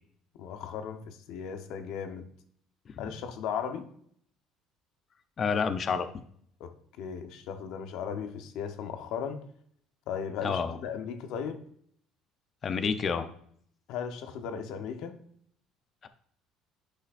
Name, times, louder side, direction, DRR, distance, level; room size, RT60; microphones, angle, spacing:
voice 1, 0.4-2.3 3.0-3.8 6.6-9.4 10.1-11.6 13.9-15.2, left 7 dB, 70° left, 7 dB, 0.9 m, -36 dB
voice 2, 5.4-6.2 10.4-10.8 12.6-13.3 16.0-16.1, left 6 dB, 40° left, 9 dB, 0.6 m, -29 dB
10.5 x 5.6 x 2.5 m, 0.63 s
cardioid pair, 115°, 0 cm